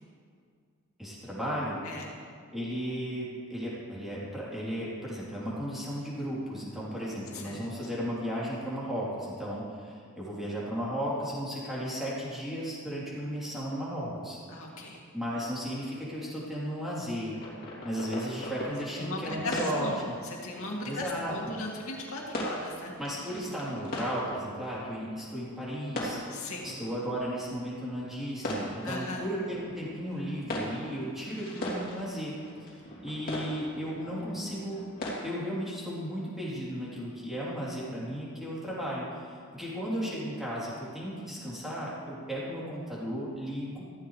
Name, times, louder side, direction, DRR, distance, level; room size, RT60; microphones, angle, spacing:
voice 1, 1.0-1.8 2.5-14.4 15.1-17.3 17.8-20.2 20.8-21.5 23.0-26.3 26.6-34.8 35.2-43.8, equal, ahead, -8 dB, 3.5 m, -35 dB
voice 2, 7.3-7.7 14.5-15.0 19.0-22.9 26.3-26.8 28.8-29.3, left 2 dB, 75° left, -2 dB, 2.4 m, -37 dB
sound 1, 17.2-35.2, left 1 dB, 45° left, 3.1 m, -40 dB
14.5 x 14.5 x 3.3 m, 2.1 s
head